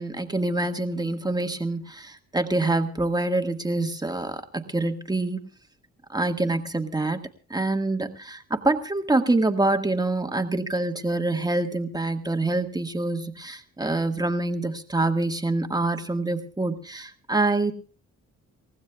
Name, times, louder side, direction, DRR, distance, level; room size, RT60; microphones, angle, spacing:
voice 1, 0.0-5.4 6.1-7.2 7.5-17.7, right 2 dB, 15° right, 5 dB, 1.7 m, -26 dB
28.5 x 15.0 x 2.4 m, 0.39 s
cardioid pair, 90°, 30 cm